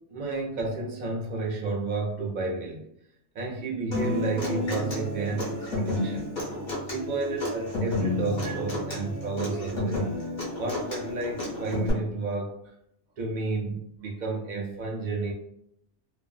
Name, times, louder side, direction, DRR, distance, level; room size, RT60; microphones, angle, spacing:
voice 1, 0.0-2.8 3.3-6.3 6.9-10.1 10.6-12.5 13.2-15.3, right 3 dB, 60° right, 0 dB, 0.5 m, -31 dB
Human voice / Acoustic guitar, 3.9-11.9, left 1 dB, 45° left, 1.0 m, -31 dB
2.4 x 2.3 x 2.2 m, 0.73 s
omnidirectional pair, 1.2 m